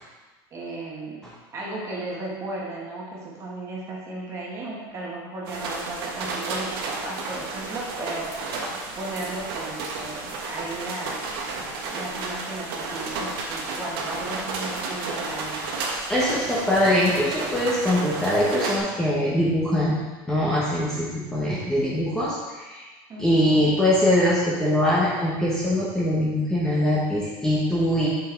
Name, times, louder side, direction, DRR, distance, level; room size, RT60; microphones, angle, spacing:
voice 1, 0.5-1.2 1.5-8.3 8.9-11.1 11.9-15.6 23.1-23.7, right 2 dB, 25° right, -4 dB, 1.6 m, -35 dB
sound 1, 5.5-18.8, right 3 dB, 80° right, 1.4 m, -32 dB
voice 2, 16.1-20.0 20.3-22.4 22.6-22.8 23.2-28.1, left 1 dB, 5° left, -8 dB, 1.2 m, -22 dB
7.7 x 5.5 x 3.9 m, 1.2 s
supercardioid pair, 165°, 12 cm